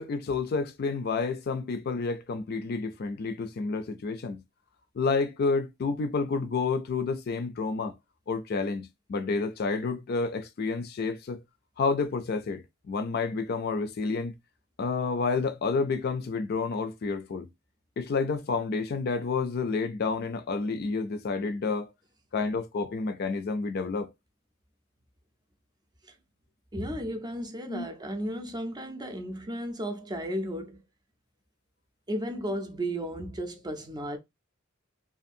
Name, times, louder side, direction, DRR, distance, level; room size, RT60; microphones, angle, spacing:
voice 1, 0.0-4.4 5.0-7.9 8.3-11.4 11.8-14.3 14.8-17.5 18.0-21.9 22.3-24.1 27.7-27.9, left 4 dB, 50° left, 0.4 m, -29 dB
voice 2, 26.7-30.8 32.1-34.2, equal, 20° right, 0.5 m, -34 dB
2.6 x 2.4 x 2.5 m
head